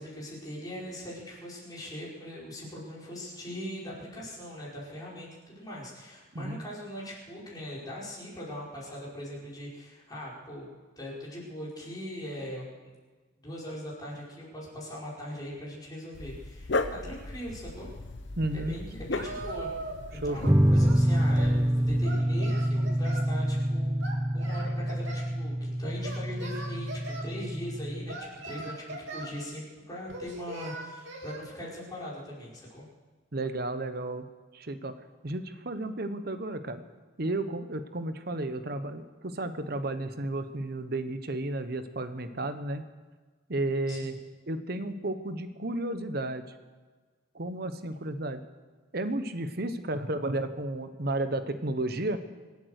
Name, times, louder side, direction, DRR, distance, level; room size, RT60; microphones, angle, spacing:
voice 1, 0.0-10.7 11.0-12.9 13.4-17.9 18.5-19.7 20.1-32.9 43.9-44.1, equal, 20° left, -6 dB, 5.2 m, -41 dB
Dog, 16.1-22.1, left 2 dB, 65° left, 0.9 m, -37 dB
voice 2, 18.4-18.8 20.2-20.5 33.3-34.2 34.5-34.9 35.2-36.8 37.2-42.8 43.5-44.1 44.5-46.5 47.3-48.4 48.9-52.2, right 2 dB, 55° right, 10 dB, 1.0 m, -32 dB
Singing, 19.1-20.1 20.4-21.6 22.0-23.3 24.0-25.3 26.0-27.3 28.1-29.4 30.1-31.4, right 2 dB, 75° right, 2.7 m, -40 dB
sound 1, 20.5-28.1, equal, 10° right, 0.5 m, -26 dB
25.5 x 8.6 x 6.5 m, 1.4 s
head